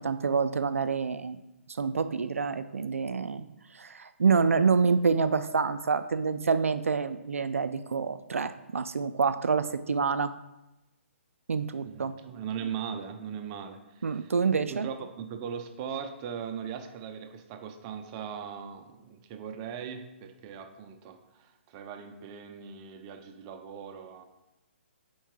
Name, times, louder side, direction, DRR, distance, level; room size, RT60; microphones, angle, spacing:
voice 1, 0.0-1.4 1.8-3.5 3.7-10.3 11.5-12.1 14.0-14.9, right 5 dB, 85° right, 12 dB, 0.4 m, -27 dB
voice 2, 11.8-14.3 14.7-24.3, right 7 dB, 30° right, 7 dB, 0.5 m, -39 dB
4.5 x 4.5 x 4.7 m, 0.97 s
hypercardioid pair, 140°, 7 cm